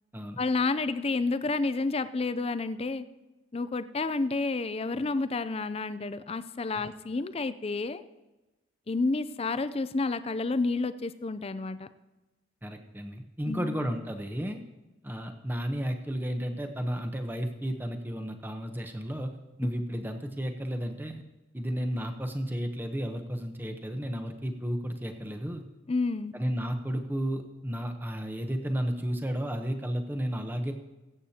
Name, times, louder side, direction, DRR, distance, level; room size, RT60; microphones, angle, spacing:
voice 1, 0.4-3.0 3.5-8.0 8.9-11.9 13.5-13.7 25.9-26.3, left 3 dB, 30° left, 13 dB, 0.4 m, -30 dB
voice 2, 12.6-14.6 15.0-19.3 19.6-21.2 21.5-25.6 26.3-30.7, equal, 10° right, 5 dB, 0.8 m, -33 dB
21.0 x 8.6 x 2.8 m, 1.1 s
head